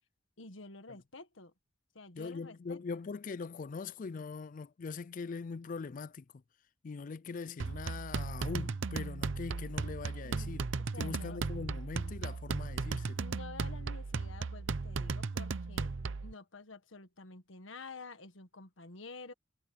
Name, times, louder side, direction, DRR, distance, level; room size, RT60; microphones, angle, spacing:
voice 1, 0.4-1.5 1.9-3.0 10.2-10.5 10.8-11.4 13.2-15.9 16.2-19.3, left 3 dB, 75° left, 1.6 m, -50 dB
voice 2, 2.2-6.3 6.8-10.7 11.0-13.2, left 4 dB, 40° left, 0.4 m, -41 dB
sound 1, 7.6-16.3, right 4 dB, 70° right, 0.7 m, -36 dB
head